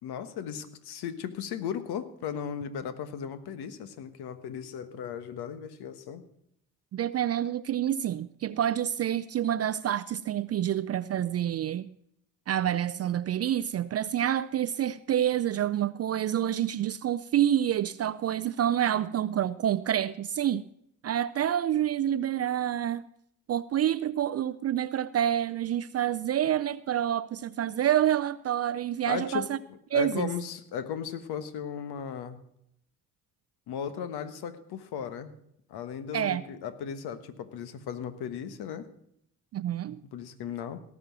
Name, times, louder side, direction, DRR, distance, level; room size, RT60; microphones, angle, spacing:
voice 1, 0.0-6.2 29.1-29.5 29.9-32.4 33.7-35.3 35.7-38.9 40.1-40.8, left 8 dB, 65° left, 1.3 m, -36 dB
voice 2, 6.9-11.9 12.5-20.6 21.0-23.0 23.5-29.6 29.9-30.3 36.1-36.4 39.5-40.0, right 11 dB, 35° right, 0.5 m, -28 dB
17.5 x 6.2 x 6.0 m
hypercardioid pair, 55°, 42 cm